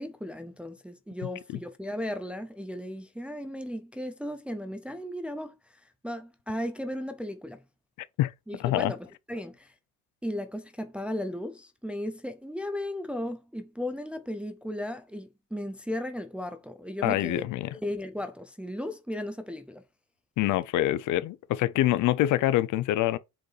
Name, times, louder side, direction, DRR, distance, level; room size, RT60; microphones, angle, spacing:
voice 1, 0.0-7.6 8.5-9.7 10.2-17.4 17.8-19.8, left 1 dB, 5° right, 0.4 m, -36 dB
voice 2, 8.6-8.9 17.0-17.7 20.4-23.2, left 14 dB, 60° left, 0.5 m, -25 dB
7.6 x 4.6 x 3.2 m
cardioid pair, 175°, 35 cm